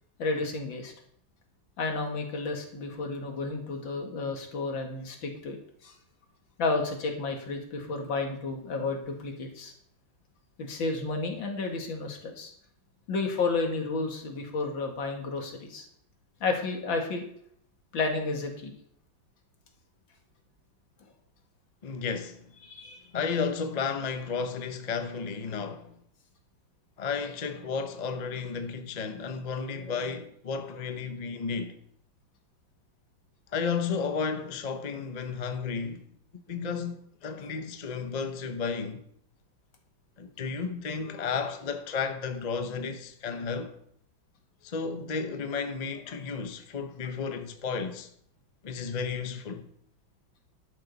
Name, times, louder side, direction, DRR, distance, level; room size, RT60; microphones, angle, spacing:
voice 1, 0.2-0.9 1.8-5.9 6.6-9.7 10.6-12.5 13.1-15.9 16.4-17.3 17.9-18.7 22.6-23.0, left 3 dB, 75° left, 2.6 m, -31 dB
voice 2, 21.8-22.4 23.1-25.9 27.0-31.8 33.5-36.0 36.5-37.0 37.2-39.0 40.2-43.7 44.6-48.1 48.6-49.7, left 5 dB, 40° left, 0.5 m, -33 dB
11.5 x 11.5 x 4.1 m
omnidirectional pair, 2.1 m